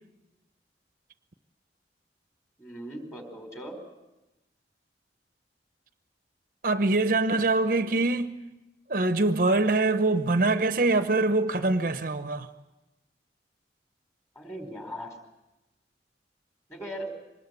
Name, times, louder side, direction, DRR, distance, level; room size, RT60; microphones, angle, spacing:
voice 1, 2.6-3.8 14.3-15.1 16.7-17.1, equal, 15° left, 4.4 m, -38 dB
voice 2, 6.6-8.3 8.9-12.5, right 2 dB, 50° right, 0.8 m, -24 dB
24.5 x 20.0 x 8.2 m
head